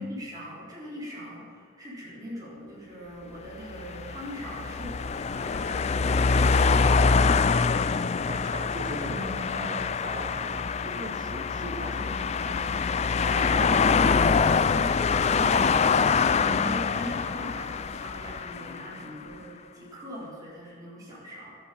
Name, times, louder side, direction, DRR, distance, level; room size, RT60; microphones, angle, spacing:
voice 1, 0.0-8.4 16.6-21.6, equal, 15° right, -7 dB, 4.3 m, -41 dB
sound 1, 3.6-19.0, left 5 dB, 30° left, 0.3 m, -25 dB
voice 2, 8.3-12.7 13.2-13.9 16.4-16.9, equal, 35° right, 1 dB, 2.0 m, -38 dB
14.0 x 8.6 x 8.7 m, 2.1 s
head